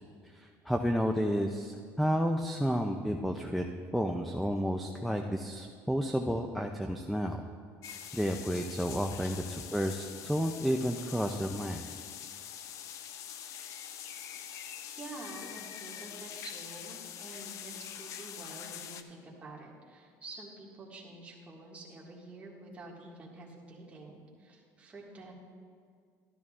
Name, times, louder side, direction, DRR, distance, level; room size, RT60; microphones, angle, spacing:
voice 1, 0.3-3.6 3.9-7.4 8.1-11.9, equal, ahead, 4 dB, 0.4 m, -31 dB
sound 1, 7.8-19.0, left 9 dB, 55° left, 0.5 m, -44 dB
voice 2, 14.9-25.3, right 2 dB, 20° right, -4 dB, 1.8 m, -48 dB
12.5 x 12.5 x 2.4 m, 2.2 s
cardioid pair, 145°, 7 cm